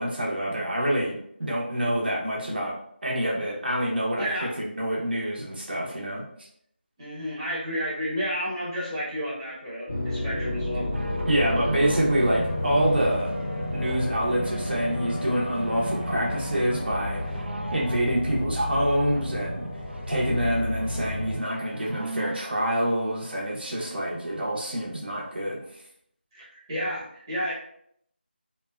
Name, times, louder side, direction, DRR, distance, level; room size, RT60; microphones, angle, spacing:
voice 1, 0.0-2.7 3.0-6.2 11.3-13.3 13.7-17.4 17.7-25.8, right 1 dB, 65° right, -4 dB, 0.7 m, -27 dB
voice 2, 4.2-4.5 7.0-10.9 23.6-23.7 26.3-27.5, equal, 20° right, -9 dB, 0.9 m, -31 dB
sound 1, 9.9-21.4, left 1 dB, 25° left, 0.4 m, -31 dB
sound 2, 10.9-24.5 25.3-25.4, right 2 dB, 85° right, 0.3 m, -42 dB
2.7 x 2.1 x 2.2 m, 0.69 s
figure-of-eight pair, 170°, 6 cm